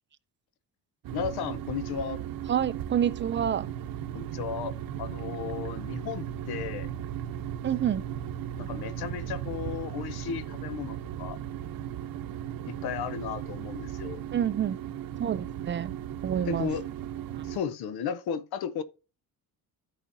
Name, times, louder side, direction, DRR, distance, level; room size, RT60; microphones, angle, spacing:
sound 1, 1.0-17.6, right 10 dB, 65° right, 0.8 m, -36 dB
voice 1, 1.1-2.2 4.1-4.7 5.0-6.9 8.6-11.4 12.7-14.2 16.5-16.9 17.4-18.8, left 7 dB, 80° left, 0.9 m, -34 dB
voice 2, 2.5-3.7 7.6-8.0 14.3-14.8 15.2-15.9 16.2-16.7, right 9 dB, 30° right, 0.4 m, -28 dB
13.5 x 5.0 x 2.7 m
cardioid pair, 155°, 38 cm